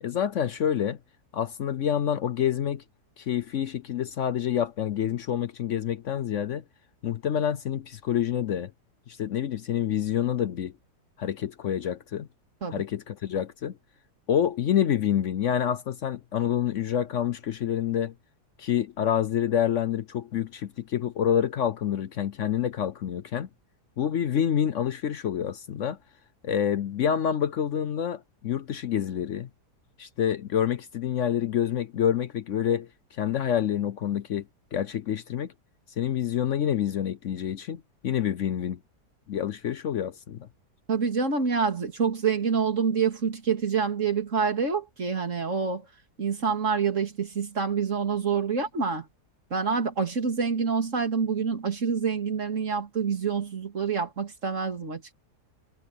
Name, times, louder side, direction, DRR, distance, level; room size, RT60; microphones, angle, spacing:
voice 1, 0.0-1.0 1.3-2.8 3.2-6.6 7.0-8.7 9.1-10.7 11.2-12.3 12.7-13.8 14.3-18.1 18.6-23.5 24.0-26.0 26.4-29.5 30.0-32.9 33.2-34.4 34.7-35.5 36.0-38.8 39.3-40.5, left 9 dB, 60° left, 0.8 m, -27 dB
voice 2, 40.9-45.9 46.2-49.1 49.5-55.1, right 6 dB, 45° right, 2.9 m, -27 dB
omnidirectional pair, 1.8 m